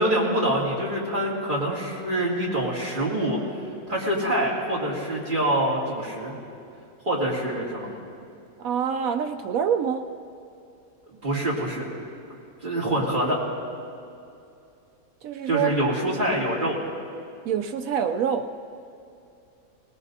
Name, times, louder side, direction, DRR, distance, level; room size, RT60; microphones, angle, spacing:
voice 1, 0.0-3.4 3.9-6.3 7.0-7.9 11.2-11.9 12.6-13.4 15.5-16.8, right 1 dB, 35° right, -5 dB, 2.5 m, -25 dB
voice 2, 8.6-10.0 15.2-15.9 17.5-18.5, right 7 dB, 75° right, 8 dB, 1.0 m, -26 dB
19.5 x 18.5 x 2.7 m, 2.6 s
omnidirectional pair, 1.5 m